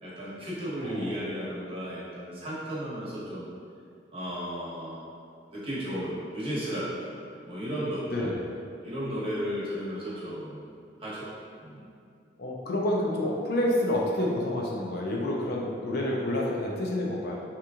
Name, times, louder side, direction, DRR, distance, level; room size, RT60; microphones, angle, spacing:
voice 1, 0.0-3.5 4.1-5.0 5.5-7.2 7.4-8.3 8.8-10.7 11.0-11.3 11.6-11.8, equal, 35° right, -9 dB, 1.0 m, -34 dB
voice 2, 0.8-1.1 8.1-8.4 12.4-17.3, left 1 dB, 60° left, -2 dB, 0.5 m, -28 dB
3.7 x 2.9 x 2.4 m, 2.3 s
head